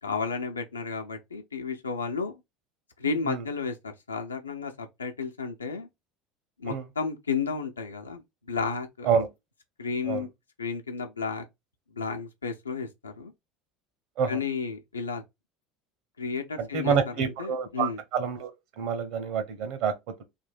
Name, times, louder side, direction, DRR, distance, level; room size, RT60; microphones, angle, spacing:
voice 1, 0.0-2.3 3.0-5.9 6.6-8.2 8.5-9.1 9.8-10.3 10.6-11.4 11.9-13.3 14.3-15.2 16.2-18.0, left 5 dB, 80° left, 0.8 m, -32 dB
voice 2, 16.6-18.5 18.8-20.2, right 6 dB, 55° right, 0.9 m, -28 dB
3.7 x 2.7 x 4.0 m
figure-of-eight pair, 70°, 0 cm